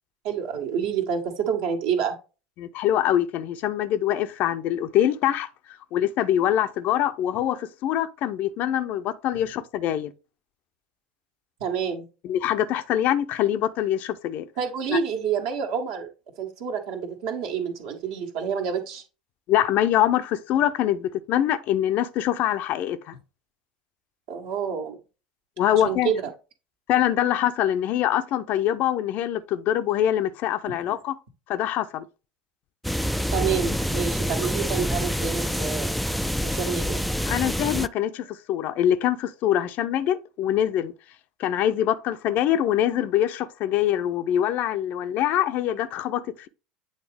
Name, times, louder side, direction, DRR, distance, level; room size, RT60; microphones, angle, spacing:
voice 1, 0.2-2.2 11.6-12.1 14.6-16.1 16.4-19.0 24.3-25.0 25.6-26.2 30.7-30.8 33.3-35.9 36.4-37.0, right 7 dB, 60° right, 1.6 m, -28 dB
voice 2, 2.6-5.5 5.9-10.1 12.2-14.4 14.9-15.0 19.5-23.2 25.6-26.1 26.9-31.1 31.5-32.1 37.2-40.9 41.4-46.2, left 11 dB, 50° left, 0.6 m, -24 dB
sound 1, 32.8-37.9, equal, ahead, 0.3 m, -26 dB
8.9 x 3.9 x 3.4 m
figure-of-eight pair, 70°, 4 cm